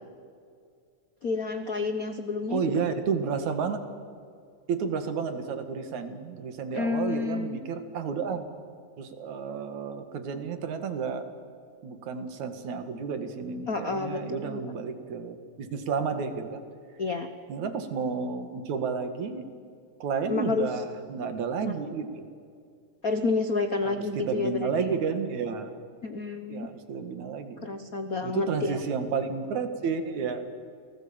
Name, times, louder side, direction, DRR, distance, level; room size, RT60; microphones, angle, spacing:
voice 1, 1.2-2.9 6.7-7.6 13.7-14.6 17.0-17.3 20.3-20.7 23.0-24.9 26.0-26.7 27.6-28.8, left 4 dB, 75° left, 8 dB, 0.8 m, -29 dB
voice 2, 2.5-3.9 4.7-8.6 9.0-11.3 11.8-16.6 17.5-19.5 20.0-22.4 23.8-25.8 26.5-27.7 28.2-30.5, right 5 dB, 70° right, 8 dB, 3.2 m, -31 dB
28.0 x 19.5 x 8.8 m, 2.3 s
omnidirectional pair, 3.4 m